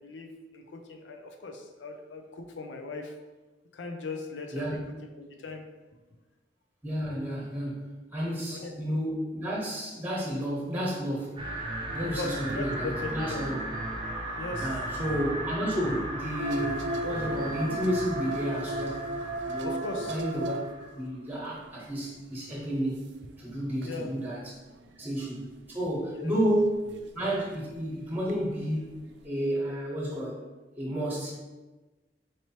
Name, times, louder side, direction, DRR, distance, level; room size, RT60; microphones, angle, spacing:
voice 1, 0.0-3.1 3.7-4.8 5.1-5.6 8.5-8.7 12.1-13.5 14.3-14.8 19.6-20.2 23.8-24.1 26.1-26.3, left 3 dB, 85° left, 4 dB, 0.5 m, -38 dB
voice 2, 4.5-5.0 6.8-11.4 11.8-13.6 14.6-19.1 19.5-19.8 20.1-20.5 20.9-23.0 23.4-24.6 25.0-26.8 27.1-30.4 30.8-31.3, equal, 10° right, -5 dB, 1.1 m, -31 dB
sound 1, 11.4-20.9, right 1 dB, 25° right, 0.6 m, -36 dB
sound 2, 16.4-21.1 21.4-21.9 22.1-24.1 24.8-25.0 26.8-27.2 27.5-27.6 28.3-28.8 29.2-29.3, right 1 dB, 75° right, 0.4 m, -35 dB
4.5 x 3.0 x 2.8 m, 1.2 s
head